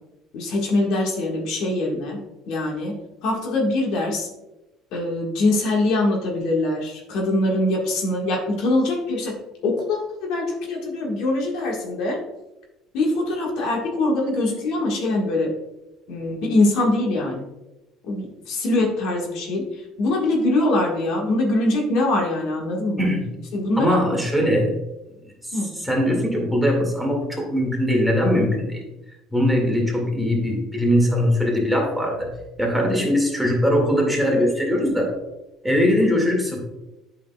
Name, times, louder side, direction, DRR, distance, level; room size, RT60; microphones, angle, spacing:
voice 1, 0.3-4.3 4.9-9.3 9.6-10.0 10.3-12.2 12.9-15.5 16.1-17.4 18.0-23.1 23.5-24.0 25.5-25.7, left 2 dB, 70° left, 0 dB, 1.6 m, -23 dB
voice 2, 23.0-23.3 23.8-24.7 25.5-25.6 25.8-28.8 29.3-32.3 32.6-35.1 35.6-36.6, equal, 5° right, -1 dB, 2.0 m, -21 dB
8.4 x 5.7 x 2.3 m, 0.97 s
supercardioid pair, 90°, 0 cm